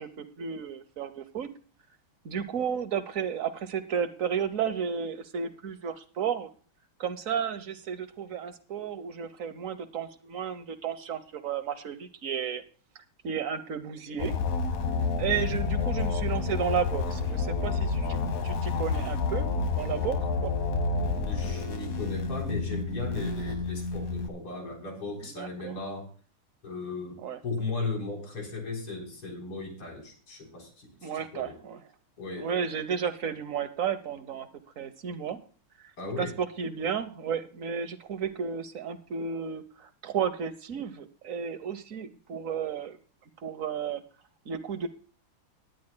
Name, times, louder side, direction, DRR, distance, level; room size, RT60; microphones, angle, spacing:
voice 1, 0.0-1.5 2.2-6.5 7.0-12.6 13.2-14.4 15.2-19.5 19.7-20.2 20.4-20.5 25.3-25.8 27.2-27.4 31.0-31.8 32.4-34.5 34.8-35.4 36.2-43.0 43.4-44.0 44.5-44.9, right 7 dB, 55° right, 11 dB, 1.0 m, -33 dB
sound 1, 14.2-24.3, left 4 dB, 50° left, 1.4 m, -29 dB
voice 2, 21.1-26.1 26.6-31.6 32.2-32.5 36.0-36.3, left 3 dB, 90° left, 1 dB, 4.7 m, -36 dB
19.5 x 10.5 x 2.2 m, 0.40 s
omnidirectional pair, 2.3 m